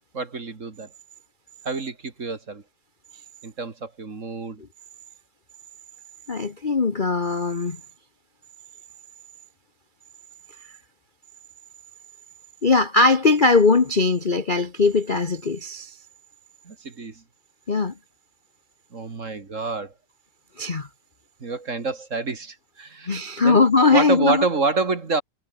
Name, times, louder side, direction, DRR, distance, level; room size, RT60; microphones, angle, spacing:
voice 1, 0.1-0.9 1.6-2.6 3.4-4.6 16.6-17.2 18.9-19.9 21.4-23.6 23.9-25.2, right 3 dB, 35° right, 2.3 m, -27 dB
voice 2, 6.3-7.8 12.6-16.0 17.7-17.9 20.6-20.9 23.1-24.4, left 3 dB, 30° left, 1.0 m, -20 dB
omnidirectional pair, 2.4 m